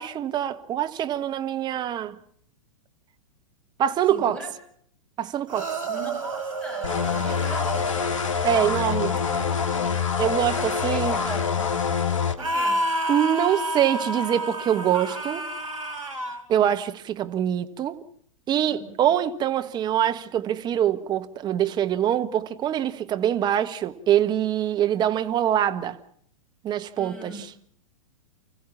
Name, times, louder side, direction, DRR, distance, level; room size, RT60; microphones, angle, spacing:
voice 1, 0.0-2.2 3.8-4.4 5.2-5.7 8.4-9.1 10.2-11.2 13.1-15.4 16.5-18.0 18.5-26.0 26.6-27.5, right 10 dB, 25° right, 1.3 m, -24 dB
voice 2, 4.1-4.5 5.9-8.1 9.1-10.0 10.4-11.8 12.4-12.9 18.7-19.1 27.0-27.5, right 1 dB, 5° left, 5.9 m, -40 dB
sound 1, 5.5-8.2 12.4-16.4, right 1 dB, 75° right, 4.2 m, -30 dB
sound 2, 6.8-12.4, left 6 dB, 65° left, 1.7 m, -25 dB
29.5 x 15.0 x 7.3 m
figure-of-eight pair, 105°, 17 cm